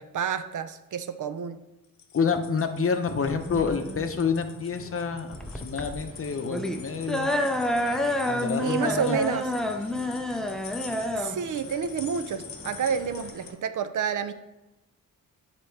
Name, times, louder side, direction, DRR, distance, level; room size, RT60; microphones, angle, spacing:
voice 1, 0.0-1.6 8.6-9.5 11.1-14.3, right 7 dB, 60° right, 10 dB, 0.6 m, -29 dB
sound 1, 1.8-13.5, left 8 dB, 80° left, 0.8 m, -46 dB
voice 2, 2.1-7.3 8.1-9.2, left 5 dB, 40° left, 7 dB, 0.7 m, -28 dB
sound 2, 3.3-13.3, left 1 dB, ahead, 0.5 m, -29 dB
sound 3, 5.3-13.5, right 2 dB, 40° right, 2.7 m, -49 dB
8.0 x 3.0 x 5.8 m, 0.97 s
cardioid pair, 90°, 34 cm